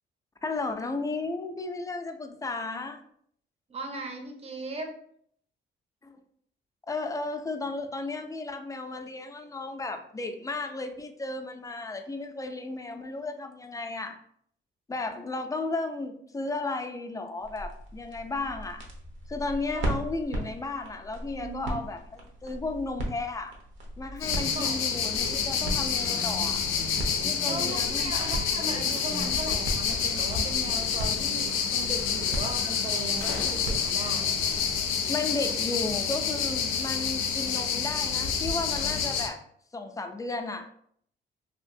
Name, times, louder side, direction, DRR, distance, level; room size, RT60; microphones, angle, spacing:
voice 1, 0.4-3.0 6.0-6.2 6.9-14.2 14.9-18.8 19.3-23.5 24.0-26.6 27.2-28.1 35.1-39.4 39.7-40.7, left 3 dB, 15° left, 6 dB, 0.3 m, -34 dB
voice 2, 3.7-4.9 19.7-19.9 21.4-21.8 24.5-24.8 27.4-34.3, right 2 dB, 30° right, 4 dB, 0.6 m, -38 dB
sound 1, 17.4-34.9, right 1 dB, 70° right, 0.8 m, -38 dB
sound 2, 24.2-39.3, left 6 dB, 90° left, 0.4 m, -28 dB
Female speech woman speaking, 24.2-24.8 25.2-25.3 25.6-27.9 28.6-29.5, equal, 90° right, 1.1 m, -41 dB
2.8 x 2.5 x 2.5 m, 0.65 s
cardioid pair, 90°, 20 cm